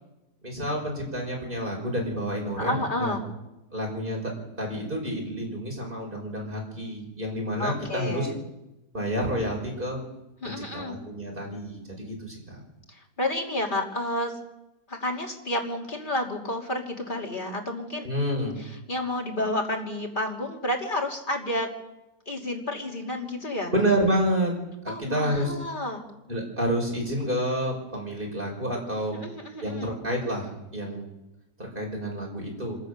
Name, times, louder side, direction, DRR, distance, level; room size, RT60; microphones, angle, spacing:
voice 1, 0.4-3.1 3.7-4.3 4.6-8.3 8.9-10.0 10.4-12.6 18.0-18.6 23.7-24.6 24.8-25.5 26.3-29.2 29.6-31.1 31.6-32.8, equal, 35° right, 0 dB, 5.8 m, -29 dB
voice 2, 2.6-3.2 7.6-8.3 10.4-11.0 12.9-14.4 14.9-18.0 18.6-21.7 22.3-23.7 24.9-26.0 29.1-29.9, left 1 dB, 30° left, 0 dB, 3.1 m, -30 dB
26.0 x 15.5 x 6.7 m, 0.97 s
omnidirectional pair, 1.6 m